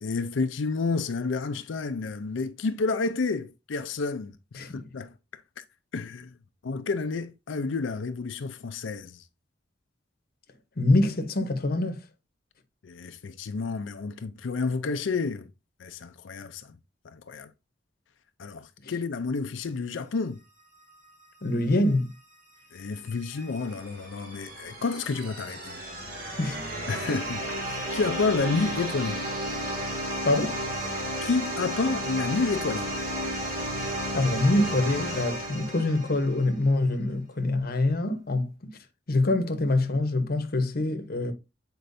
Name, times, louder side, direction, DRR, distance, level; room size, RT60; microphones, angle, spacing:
voice 1, 0.0-4.3 4.7-5.1 5.6-5.7 5.9-6.3 6.6-9.2 12.8-15.5 15.8-16.8 17.0-17.5 18.4-20.4 22.7-25.8 26.9-29.2 31.2-32.9, left 4 dB, 80° left, 0.5 m, -30 dB
voice 2, 4.6-4.9 10.8-12.0 18.8-18.9 21.4-22.1 26.4-26.6 30.2-30.6 34.1-38.8 39.1-41.3, left 2 dB, 55° left, 0.9 m, -25 dB
sound 1, 22.8-36.6, equal, 55° right, 2.2 m, -33 dB
8.2 x 4.4 x 2.6 m
head